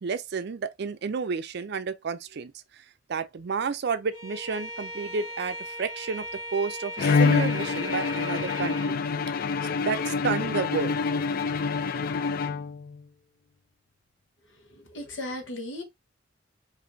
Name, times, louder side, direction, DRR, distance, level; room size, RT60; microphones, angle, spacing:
voice 1, 0.0-2.8 3.1-9.0 9.8-11.0, right 5 dB, 60° right, 0.5 m, -31 dB
Bowed string instrument, 4.1-9.0, equal, 30° left, 2.5 m, -38 dB
Bowed string instrument 2, 7.0-13.0, left 4 dB, 50° left, 0.4 m, -26 dB
voice 2, 14.6-15.8, left 1 dB, 70° left, 1.1 m, -36 dB
5.0 x 2.6 x 2.6 m
head